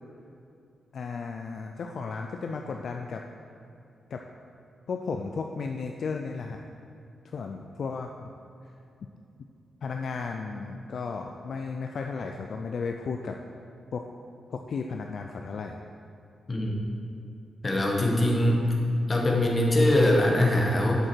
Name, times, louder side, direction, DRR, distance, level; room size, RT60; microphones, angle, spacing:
voice 1, 0.9-3.2 4.1-4.2 4.9-6.6 7.2-8.3 8.6-8.7 9.8-13.4 13.9-14.1 14.5-15.8, left 4 dB, 50° left, 3 dB, 0.4 m, -34 dB
voice 2, 17.6-18.7 19.1-21.1, left 1 dB, 25° left, -1 dB, 1.2 m, -22 dB
8.0 x 7.5 x 4.5 m, 2.6 s
wide cardioid pair, 160°, 0 cm